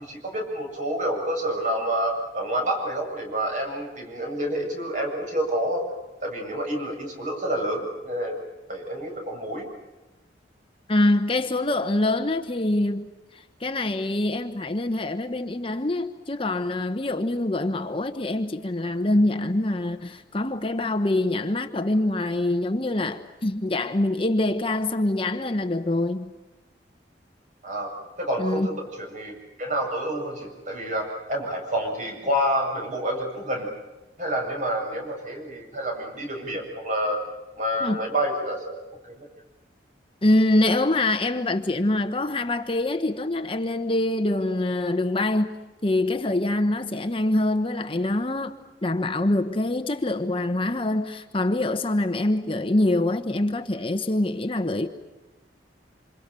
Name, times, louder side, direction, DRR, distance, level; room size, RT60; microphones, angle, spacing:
voice 1, 0.0-5.8 6.2-8.3 8.7-9.7 27.6-27.9 28.2-33.7 34.2-37.2 37.6-39.3, right 1 dB, 45° right, 7.7 m, -28 dB
voice 2, 10.9-13.0 13.3-26.3 28.4-28.7 37.8-38.0 40.2-45.5 45.8-48.5 48.8-54.9, left 1 dB, 30° left, 1.1 m, -24 dB
28.0 x 27.0 x 6.9 m
head